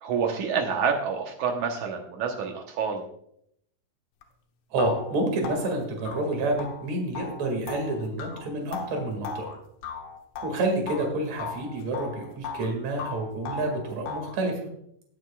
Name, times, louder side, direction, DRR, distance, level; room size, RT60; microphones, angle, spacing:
voice 1, 0.0-3.0, right 6 dB, 70° right, 3 dB, 2.1 m, -28 dB
sound 1, 4.2-4.3 4.8-11.1 11.4-12.7 13.0-14.4, left 5 dB, 80° left, 2.9 m, -37 dB
voice 2, 4.7-9.5 10.4-14.6, right 2 dB, 50° right, 2 dB, 3.1 m, -28 dB
19.0 x 7.7 x 2.3 m, 0.72 s
omnidirectional pair, 4.2 m